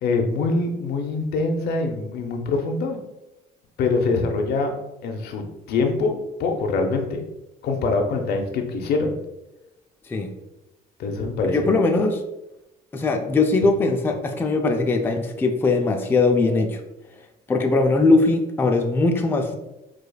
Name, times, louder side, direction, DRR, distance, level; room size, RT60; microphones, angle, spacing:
voice 1, 0.0-3.0 3.8-4.7 5.0-7.2 7.6-9.2 11.0-11.7, left 3 dB, 70° left, 3 dB, 0.6 m, -24 dB
voice 2, 11.5-12.2 12.9-16.8 17.5-19.6, left 3 dB, 15° left, 3 dB, 0.3 m, -20 dB
4.8 x 2.3 x 2.2 m, 0.94 s
cardioid pair, 110°, 17 cm